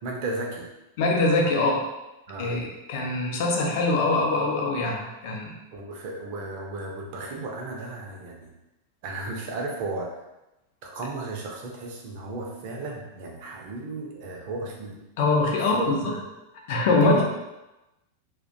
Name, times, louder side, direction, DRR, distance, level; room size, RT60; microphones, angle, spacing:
voice 1, 0.0-0.7 2.3-2.6 5.7-8.5 9.0-10.1 10.8-15.3 15.7-16.2 17.0-17.2, right 2 dB, 45° right, 0 dB, 0.5 m, -34 dB
voice 2, 1.0-1.8 2.4-5.5 15.2-16.1 16.7-17.2, left 2 dB, 50° left, 0 dB, 0.5 m, -23 dB
2.4 x 2.1 x 2.6 m, 0.98 s
figure-of-eight pair, 90°, 0 cm